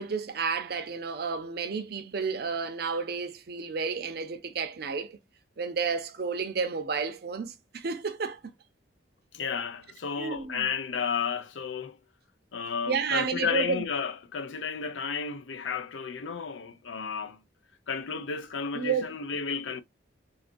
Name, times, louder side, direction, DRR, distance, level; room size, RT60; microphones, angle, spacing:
voice 1, 0.0-5.2 5.6-8.4 10.2-10.7 12.9-13.8 18.7-19.1, right 5 dB, 55° right, 0.5 m, -31 dB
voice 2, 9.3-12.0 12.5-17.4 17.9-19.8, left 6 dB, 85° left, 0.5 m, -32 dB
3.8 x 2.4 x 2.5 m
head